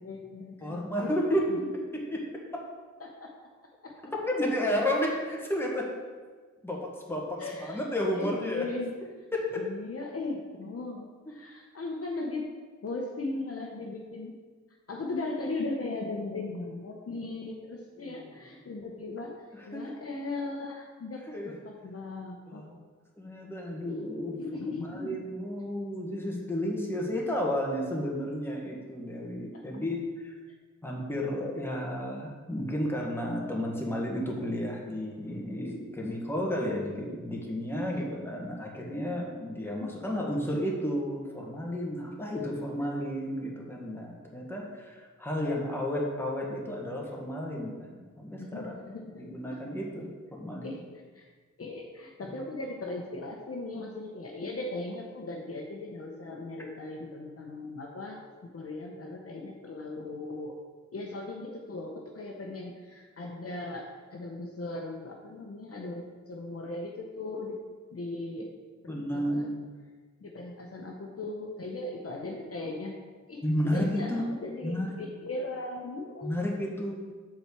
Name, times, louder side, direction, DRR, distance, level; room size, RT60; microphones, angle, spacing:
voice 1, 0.0-1.1 1.5-1.6 3.0-3.3 3.8-3.9 7.4-7.8 8.1-8.9 9.5-12.5 12.8-14.3 14.9-19.3 19.7-22.6 24.3-25.3 31.6-31.7 39.8-39.9 48.4-49.3 50.6-50.8 51.1-51.3 51.6-60.5 60.9-67.6 67.9-68.5 68.8-69.5 70.2-73.0 73.3-76.4, left 2 dB, 50° left, 0 dB, 0.9 m, -38 dB
voice 2, 0.6-1.6 1.9-2.2 2.5-2.6 4.3-5.9 6.6-8.6 9.3-9.6 18.0-18.3 19.7-19.8 21.3-21.5 22.5-22.8 23.2-24.4 24.8-30.3 30.8-48.7 49.2-50.7 52.2-52.3 68.9-69.6 73.4-74.2 74.6-74.9 76.2-76.9, equal, 10° left, -3 dB, 1.7 m, -32 dB
7.8 x 4.4 x 6.9 m, 1.4 s
wide cardioid pair, 110°, 30 cm